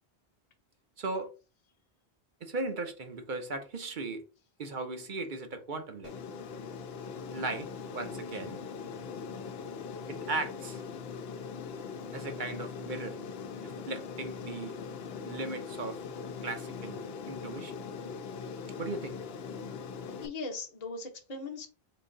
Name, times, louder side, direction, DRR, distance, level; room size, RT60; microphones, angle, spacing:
voice 1, 1.0-1.3 2.4-4.2 4.6-6.1 7.3-8.6 10.1-10.8 12.1-13.2 13.9-14.7 15.2-16.0 16.4-17.7 18.8-19.2, right 3 dB, 55° right, 0.9 m, -37 dB
Aircraft, 6.0-20.3, left 5 dB, 75° left, 0.8 m, -41 dB
voice 2, 20.2-21.7, left 3 dB, 45° left, 0.8 m, -39 dB
3.8 x 2.7 x 3.8 m
omnidirectional pair, 1.0 m